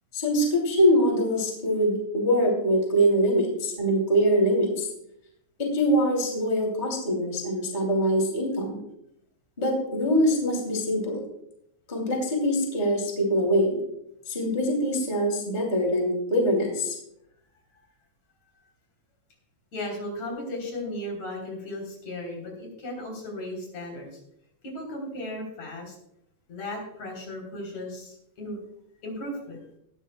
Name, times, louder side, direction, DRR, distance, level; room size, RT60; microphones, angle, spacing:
voice 1, 0.1-4.9 5.6-8.8 9.6-11.2 11.9-13.8 14.3-17.0, equal, 15° left, 1 dB, 2.6 m, -23 dB
voice 2, 19.7-24.1 24.6-25.9 26.5-28.6 29.0-29.6, left 1 dB, 65° left, 1 dB, 4.7 m, -36 dB
19.0 x 12.5 x 2.2 m, 0.75 s
omnidirectional pair, 3.4 m